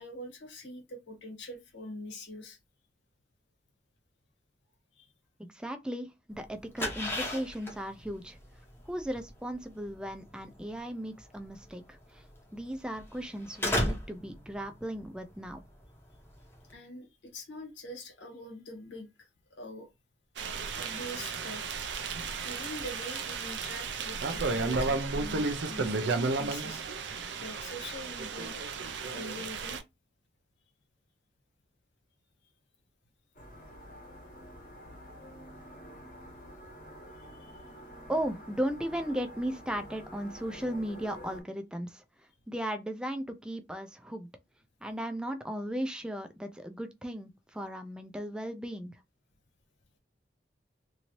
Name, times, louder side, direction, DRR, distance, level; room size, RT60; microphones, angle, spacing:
voice 1, 0.0-2.6 4.9-5.1 16.7-19.9 20.7-21.8 22.4-26.8 27.4-28.6 29.1-29.8 37.2-37.6, left 1 dB, 85° left, 1.1 m, -44 dB
voice 2, 5.4-8.4 8.9-12.2 12.5-15.6 38.1-42.0 42.5-44.3 44.8-48.9, equal, 5° right, 0.4 m, -36 dB
sound 1, 6.3-16.7, left 1 dB, 15° left, 0.8 m, -37 dB
sound 2, 20.4-29.8, right 4 dB, 80° right, 0.5 m, -33 dB
sound 3, 33.3-41.4, equal, 45° left, 1.1 m, -48 dB
2.8 x 2.6 x 3.0 m
head